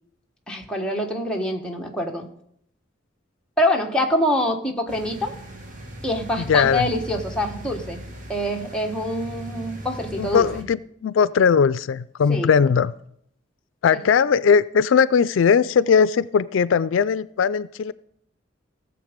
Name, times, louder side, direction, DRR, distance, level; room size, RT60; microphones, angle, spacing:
voice 1, 0.5-2.3 3.6-5.3 6.0-8.0 8.3-10.5 12.3-12.5 13.9-14.0, left 1 dB, 5° left, 0 dB, 1.4 m, -25 dB
sound 1, 4.9-10.6, equal, 45° right, 2.0 m, -38 dB
voice 2, 6.4-6.9 10.2-12.9 13.8-17.9, left 6 dB, 85° left, 18 dB, 0.4 m, -19 dB
16.5 x 7.2 x 5.2 m, 0.70 s
head